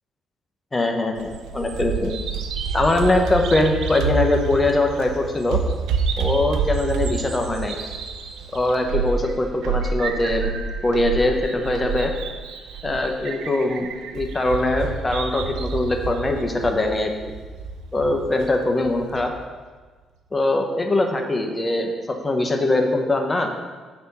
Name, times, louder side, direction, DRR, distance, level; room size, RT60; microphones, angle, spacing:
voice 1, 0.7-2.2 2.7-5.6 6.2-7.8 8.5-12.1 12.8-17.3 17.9-19.3 20.3-23.5, left 2 dB, 20° left, 3 dB, 1.1 m, -22 dB
Bird vocalization bird call bird song, 1.2-19.3, right 5 dB, 90° right, 0.6 m, -28 dB
8.1 x 4.2 x 5.6 m, 1.4 s
cardioid pair, 90°, 0 cm